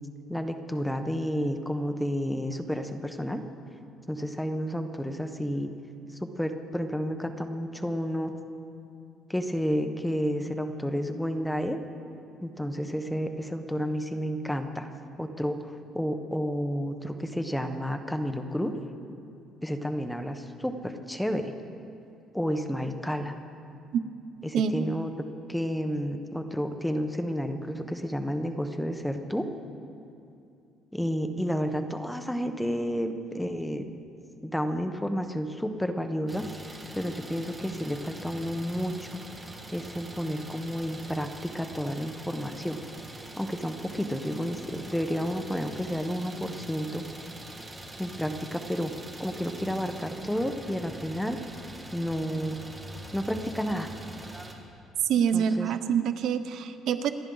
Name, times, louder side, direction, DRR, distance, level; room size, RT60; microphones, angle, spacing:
voice 1, 0.3-3.4 4.1-5.7 6.4-8.3 9.3-11.8 12.4-14.9 15.2-18.7 19.6-21.5 22.3-23.4 24.4-25.1 25.5-29.5 30.9-33.9 34.4-36.5 36.9-39.2 39.7-42.8 43.4-47.3 48.0-48.9 49.2-51.4 51.9-52.6 53.1-53.9 55.3-55.7, equal, 5° left, 6 dB, 1.0 m, -31 dB
voice 2, 24.5-24.8 55.0-57.1, right 8 dB, 65° right, 10 dB, 0.7 m, -26 dB
Idling, 36.3-54.5, right 1 dB, 15° right, 1.7 m, -44 dB
28.0 x 11.0 x 3.9 m, 2.6 s
cardioid pair, 130°, 0 cm